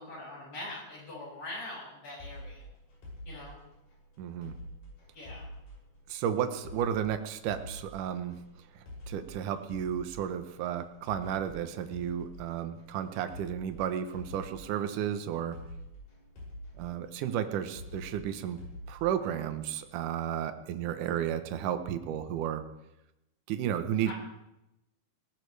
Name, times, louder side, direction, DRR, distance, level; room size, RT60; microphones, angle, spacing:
voice 1, 0.0-2.6 3.3-3.6 5.1-5.5 24.1-24.2, left 2 dB, 40° left, -4 dB, 8.3 m, -42 dB
sound 1, 2.2-19.9, equal, 65° left, 8.5 m, -48 dB
voice 2, 4.2-4.6 6.1-8.4 9.1-15.6 16.8-18.6 18.9-22.6 23.5-24.1, right 9 dB, 70° right, 9 dB, 2.3 m, -33 dB
19.0 x 18.0 x 3.4 m, 0.90 s
omnidirectional pair, 4.3 m